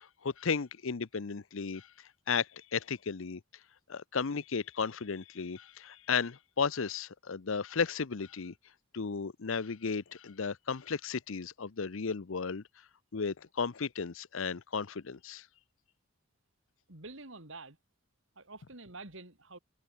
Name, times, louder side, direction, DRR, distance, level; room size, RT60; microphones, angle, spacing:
voice 1, 0.0-3.4 3.9-8.5 8.9-12.6 13.1-15.5, left 5 dB, 65° left, 0.7 m, -34 dB
voice 2, 16.9-17.8 18.3-19.6, right 3 dB, 60° right, 3.2 m, -47 dB
head